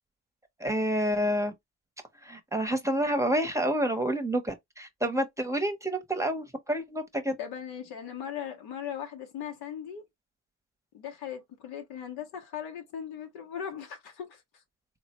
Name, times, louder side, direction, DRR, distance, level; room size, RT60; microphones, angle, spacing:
voice 1, 0.6-1.5 2.2-7.4, right 1 dB, 10° right, 0.8 m, -28 dB
voice 2, 7.4-10.1 10.9-14.4, left 8 dB, 85° left, 1.0 m, -38 dB
3.7 x 2.1 x 2.9 m
cardioid pair, 80°, 37 cm